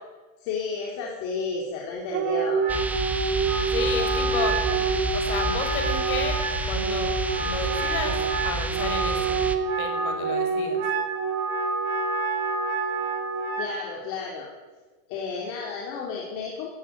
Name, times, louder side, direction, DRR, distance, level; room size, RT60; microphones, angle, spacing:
voice 1, 0.4-2.6 13.5-14.5 15.1-16.7, left 4 dB, 40° left, -2 dB, 4.2 m, -32 dB
Wind instrument woodwind instrument, 2.1-13.8, right 4 dB, 35° right, 4.4 m, -27 dB
sound 1, 2.7-9.6, right 2 dB, 5° right, 0.8 m, -30 dB
voice 2, 3.7-6.4 6.7-9.5 9.8-10.8, left 5 dB, 65° left, 6 dB, 5.7 m, -32 dB
17.0 x 15.5 x 9.8 m, 1.3 s
supercardioid pair, 160°, 45 cm